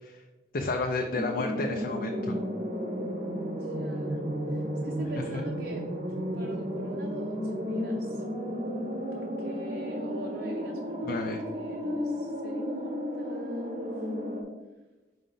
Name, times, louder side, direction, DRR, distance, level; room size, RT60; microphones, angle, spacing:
voice 1, 0.5-2.4 5.3-5.4 11.0-11.4, left 3 dB, 45° left, 3 dB, 0.4 m, -31 dB
sound 1, 1.1-14.4, equal, 40° right, 0.8 m, -33 dB
voice 2, 3.4-4.2 4.5-5.9 6.3-8.2 9.1-13.9, right 2 dB, 65° right, -1 dB, 0.7 m, -43 dB
5.1 x 4.9 x 3.8 m, 1.2 s
head